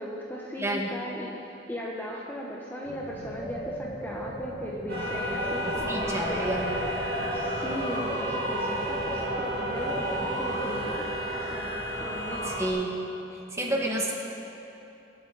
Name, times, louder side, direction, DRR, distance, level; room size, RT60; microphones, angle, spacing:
voice 1, 0.0-6.4 7.3-11.0 11.3-11.7 12.0-12.6, equal, 10° left, -3 dB, 0.9 m, -38 dB
voice 2, 0.6-0.9 5.7-6.8 12.4-12.9 13.5-14.1, right 1 dB, 15° right, -1 dB, 1.6 m, -30 dB
sound 1, 2.8-11.0, equal, 40° left, 2.9 m, -37 dB
sound 2, 4.9-12.7, equal, 60° right, 2.3 m, -31 dB
22.5 x 8.7 x 4.0 m, 3.0 s
head